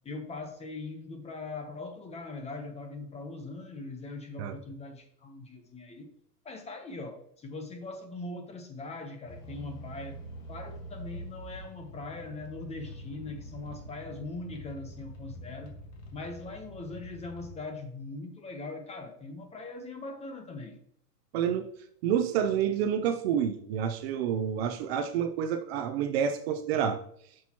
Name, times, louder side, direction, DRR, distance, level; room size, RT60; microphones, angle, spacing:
voice 1, 0.0-6.1 6.4-10.2 10.5-15.7 16.1-20.8, left 3 dB, 15° left, 6 dB, 0.8 m, -41 dB
sound 1, 9.3-17.5, equal, 50° left, 1.6 m, -45 dB
voice 2, 21.3-21.7 22.0-27.0, right 8 dB, 40° right, 9 dB, 0.6 m, -28 dB
8.0 x 6.2 x 2.9 m, 0.67 s
hypercardioid pair, 130°, 48 cm